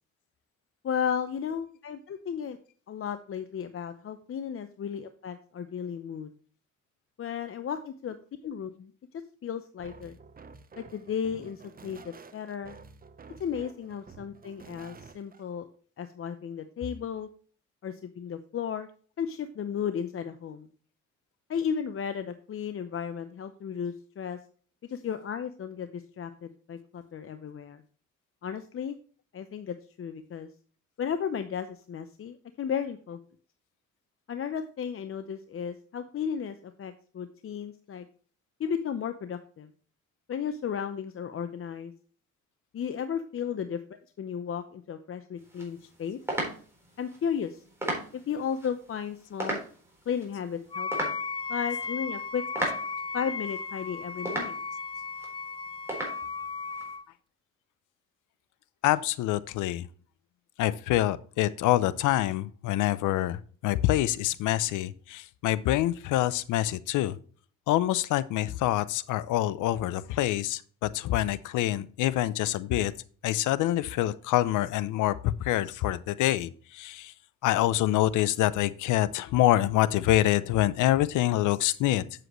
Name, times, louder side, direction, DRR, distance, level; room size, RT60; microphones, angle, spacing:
voice 1, 0.8-2.6 2.9-6.3 7.2-8.2 8.4-8.9 9.4-10.1 10.8-12.8 13.4-15.7 16.0-17.3 17.8-18.9 19.2-20.7 21.5-24.4 24.9-27.8 28.4-29.0 29.3-30.5 31.0-33.2 34.3-38.1 38.6-39.7 40.3-41.9 42.7-43.8 44.2-46.2 47.0-47.6 48.1-49.6 50.1-51.1 51.5-52.4 53.1-54.6, left 7 dB, 45° left, 9 dB, 0.7 m, -34 dB
sound 1, 9.8-15.4, right 4 dB, 30° right, 0.9 m, -50 dB
sound 2, 45.4-57.0, right 1 dB, 10° right, 3.9 m, -38 dB
Wind instrument woodwind instrument, 50.7-57.0, left 4 dB, 20° left, 0.3 m, -35 dB
voice 2, 58.8-59.9 60.6-67.2 67.7-72.9 73.2-77.1 77.4-82.0, left 14 dB, 90° left, 17 dB, 0.6 m, -26 dB
7.9 x 7.6 x 3.0 m, 0.43 s
cardioid pair, 90°, 30 cm